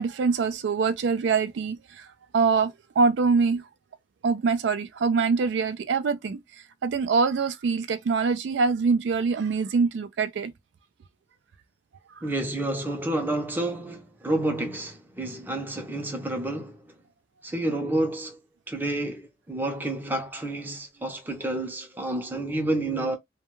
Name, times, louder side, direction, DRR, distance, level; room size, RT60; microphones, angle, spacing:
voice 1, 0.0-3.7 4.2-6.4 6.8-10.5 12.2-12.3, right 5 dB, 80° right, 0.3 m, -24 dB
voice 2, 12.2-16.8 17.4-18.4 18.7-23.2, right 1 dB, 10° right, 0.5 m, -29 dB
2.2 x 2.2 x 2.9 m
head